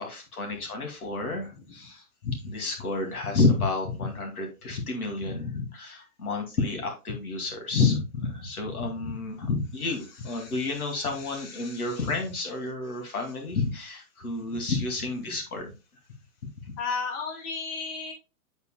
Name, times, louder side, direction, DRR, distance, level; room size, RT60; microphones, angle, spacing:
voice 1, 0.0-15.7 16.6-16.7, left 3 dB, 90° left, 3 dB, 2.5 m, -30 dB
voice 2, 10.3-12.1 15.2-15.4 16.8-18.1, left 4 dB, 40° left, 2 dB, 3.0 m, -36 dB
8.0 x 7.4 x 2.2 m, 0.28 s
hypercardioid pair, 130°, 43 cm